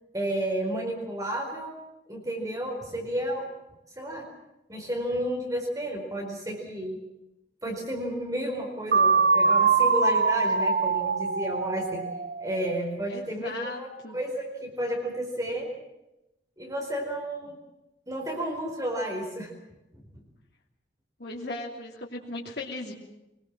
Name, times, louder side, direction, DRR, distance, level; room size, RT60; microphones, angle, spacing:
voice 1, 0.1-1.8 2.1-3.5 4.0-4.3 4.7-7.0 7.6-12.1 12.4-15.7 16.6-17.6 18.1-19.5 20.1-20.2, right 1 dB, 20° right, 1 dB, 4.6 m, -32 dB
sound 1, 8.9-12.8, right 4 dB, 50° right, 0.7 m, -23 dB
voice 2, 13.1-14.2 21.2-22.9, left 2 dB, 60° left, -2 dB, 3.0 m, -37 dB
24.0 x 21.0 x 7.5 m, 0.93 s
head